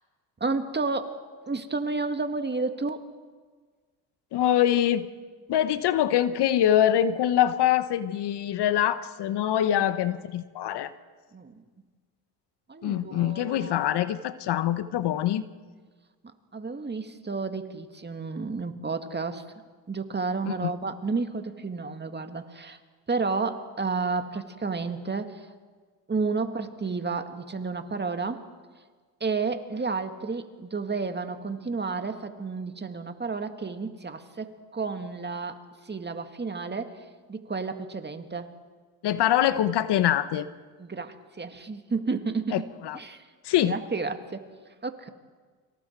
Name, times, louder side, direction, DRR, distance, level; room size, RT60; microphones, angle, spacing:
voice 1, 0.4-1.2 1.5-3.0 9.7-9.8 11.3-11.5 12.7-13.8 16.5-19.4 19.9-22.8 23.1-25.4 26.1-28.4 29.2-35.6 35.9-37.0 37.3-38.5 40.8-42.7 42.9-43.2 43.7-44.4 44.8-45.1, right 4 dB, 20° right, 7 dB, 2.0 m, -31 dB
voice 2, 4.3-5.1 5.5-10.9 12.8-15.4 20.5-20.7 39.0-40.5 42.5-43.0 43.4-43.8, left 11 dB, 60° left, 13 dB, 1.1 m, -24 dB
29.5 x 24.5 x 4.6 m, 1.5 s
supercardioid pair, 75°, 46 cm